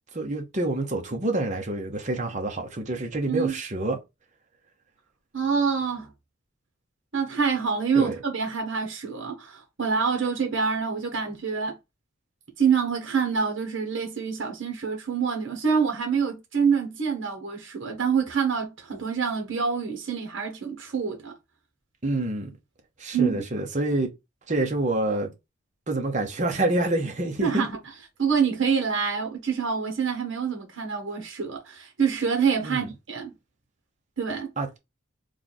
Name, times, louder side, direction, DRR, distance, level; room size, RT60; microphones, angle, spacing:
voice 1, 0.1-4.0 7.9-8.2 22.0-22.5 23.0-24.1 24.5-25.3 25.9-27.7 32.6-32.9 34.6-34.8, right 2 dB, 35° right, 0.8 m, -27 dB
voice 2, 5.3-6.1 7.1-11.8 12.6-21.3 23.1-23.4 27.4-27.8 28.2-33.3 34.2-34.5, right 6 dB, 65° right, 1.0 m, -26 dB
3.3 x 2.3 x 3.9 m
head